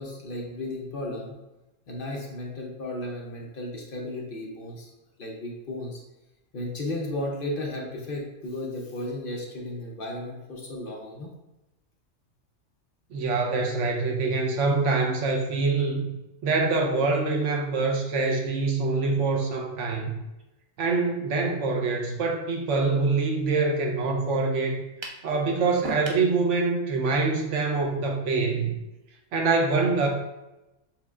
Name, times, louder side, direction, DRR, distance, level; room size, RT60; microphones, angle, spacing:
voice 1, 0.0-1.3 1.9-4.9 5.2-6.0 6.5-11.3, left 1 dB, 50° left, -1 dB, 0.8 m, -34 dB
voice 2, 13.1-16.1 16.4-20.2 20.8-24.8 25.2-28.7 29.3-30.1, right 3 dB, 75° right, 1 dB, 1.0 m, -25 dB
sound 1, 25.0-25.3 25.8-26.3, right 2 dB, 50° right, 0.3 m, -35 dB
6.0 x 3.3 x 2.4 m, 0.98 s
omnidirectional pair, 1.3 m